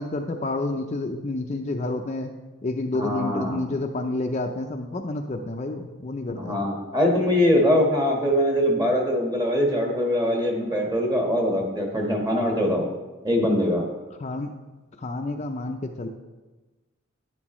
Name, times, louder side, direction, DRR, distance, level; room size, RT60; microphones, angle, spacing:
voice 1, 0.0-2.3 2.6-6.7 14.2-14.5 15.0-16.1, left 2 dB, 35° left, 3 dB, 0.5 m, -29 dB
voice 2, 2.9-3.6 6.4-12.9 13.2-13.9, equal, 20° right, 0 dB, 1.4 m, -22 dB
11.0 x 9.8 x 3.1 m, 1.2 s
head